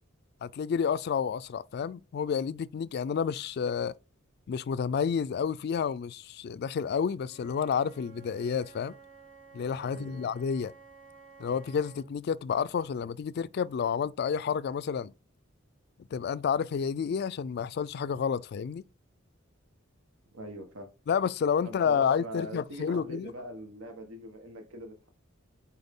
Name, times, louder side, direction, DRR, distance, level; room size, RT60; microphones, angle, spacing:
voice 1, 0.4-4.0 4.5-9.0 9.5-10.7 11.4-15.1 16.1-18.9 21.1-23.3, left 7 dB, 50° left, 0.3 m, -30 dB
Wind instrument woodwind instrument, 7.2-12.1, right 5 dB, 65° right, 1.8 m, -53 dB
voice 2, 9.8-10.3 20.3-20.9 21.6-25.1, right 1 dB, 85° right, 1.3 m, -43 dB
8.0 x 4.4 x 3.6 m
head